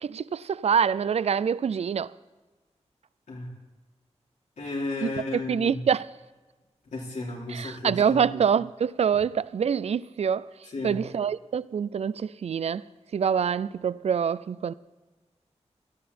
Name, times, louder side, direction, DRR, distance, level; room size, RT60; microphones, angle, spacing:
voice 1, 0.0-2.1 5.0-6.1 7.5-10.5 10.8-12.8 13.1-14.7, right 7 dB, 65° right, 0.4 m, -25 dB
voice 2, 4.6-5.7 6.9-8.2 10.7-10.9, left 2 dB, 90° left, 4.4 m, -33 dB
17.5 x 13.0 x 4.3 m
wide cardioid pair, 120°, 12 cm